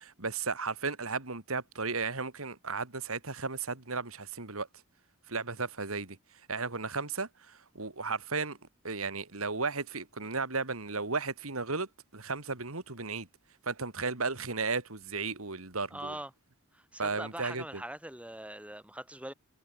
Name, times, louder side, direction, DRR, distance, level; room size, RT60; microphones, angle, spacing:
voice 1, 0.0-4.7 5.3-6.2 6.5-8.6 8.8-13.3 13.7-16.1 17.0-17.8, right 4 dB, 70° right, 2.8 m, -34 dB
voice 2, 15.9-16.3 16.7-19.3, right 1 dB, 5° right, 7.7 m, -42 dB
head